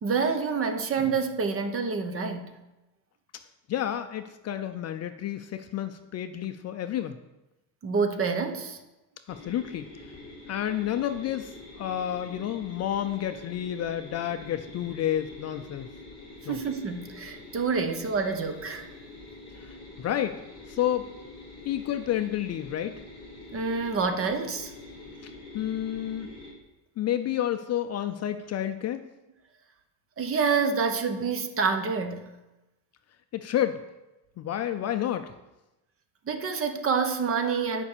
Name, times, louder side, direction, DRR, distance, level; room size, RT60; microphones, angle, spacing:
voice 1, 0.0-2.5 7.8-8.8 16.5-18.9 23.5-24.7 30.2-32.3 36.3-37.8, right 5 dB, 30° right, 7 dB, 0.9 m, -27 dB
voice 2, 3.7-7.2 9.3-9.9 10.5-15.9 16.5-16.6 19.6-21.1 21.6-23.0 25.2-26.3 27.0-29.1 33.3-33.8 34.4-35.3, left 11 dB, 40° left, 9 dB, 0.5 m, -30 dB
sound 1, 9.3-26.5, left 2 dB, 15° left, 2.7 m, -46 dB
9.7 x 5.4 x 6.7 m, 1.0 s
cardioid pair, 145°, 42 cm